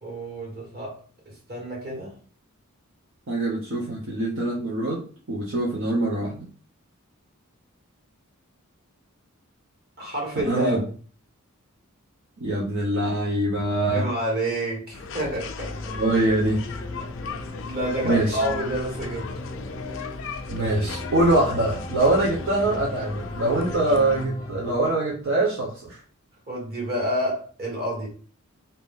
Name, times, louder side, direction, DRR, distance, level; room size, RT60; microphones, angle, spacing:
voice 1, 0.0-2.2 10.0-10.9 13.9-15.9 17.6-19.3 26.5-28.1, right 1 dB, 45° right, -2 dB, 1.6 m, -29 dB
voice 2, 3.3-6.4 10.5-10.8 12.4-14.0 16.0-16.6 18.0-18.4 20.5-26.0, right 2 dB, 60° right, -5 dB, 0.9 m, -24 dB
sound 1, 14.9-24.3, left 4 dB, 60° left, 0.5 m, -36 dB
sound 2, 15.7-24.9, left 1 dB, 15° left, 0.6 m, -37 dB
2.9 x 2.6 x 3.6 m, 0.40 s
head